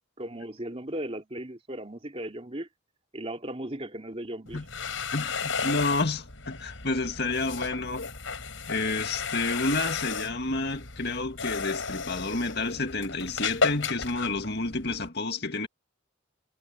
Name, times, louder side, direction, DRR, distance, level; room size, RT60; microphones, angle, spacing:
voice 1, 0.2-2.7 3.1-4.6, right 1 dB, 30° right, 3.0 m, -36 dB
sound 1, 4.5-15.1, left 5 dB, 85° left, 4.9 m, -34 dB
voice 2, 5.1-8.1 8.7-15.7, left 3 dB, 55° left, 2.2 m, -30 dB
head